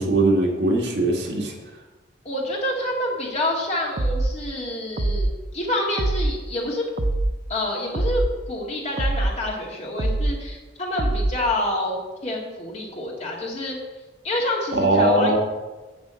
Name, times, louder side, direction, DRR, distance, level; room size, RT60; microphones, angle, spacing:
voice 1, 0.0-1.5 14.7-15.4, right 2 dB, 65° right, 0 dB, 1.8 m, -20 dB
voice 2, 2.2-5.3 5.5-6.9 7.5-8.2 8.5-13.8 14.2-15.4, left 1 dB, 35° left, -2 dB, 2.1 m, -27 dB
sound 1, 4.0-4.4 5.0-5.4 6.0-6.4 7.0-7.4 7.9-8.3 9.0-9.4 10.0-10.4 11.0-11.4, right 2 dB, 50° right, 0.6 m, -23 dB
7.4 x 6.1 x 7.6 m, 1.2 s
head